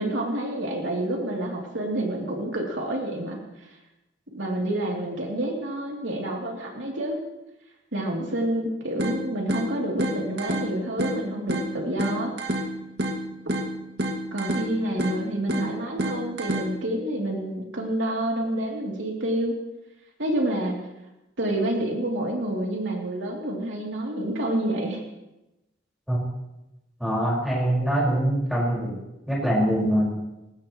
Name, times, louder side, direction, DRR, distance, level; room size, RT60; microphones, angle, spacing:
voice 1, 0.0-3.7 4.3-7.2 7.9-12.3 13.4-13.5 14.3-19.5 20.2-20.7 21.4-25.0, right 1 dB, 80° right, -1 dB, 3.0 m, -28 dB
sound 1, 9.0-17.0, right 1 dB, 55° right, 2.0 m, -30 dB
voice 2, 27.0-28.9 29.3-30.1, equal, ahead, -4 dB, 5.1 m, -23 dB
21.0 x 18.5 x 3.1 m, 0.94 s
head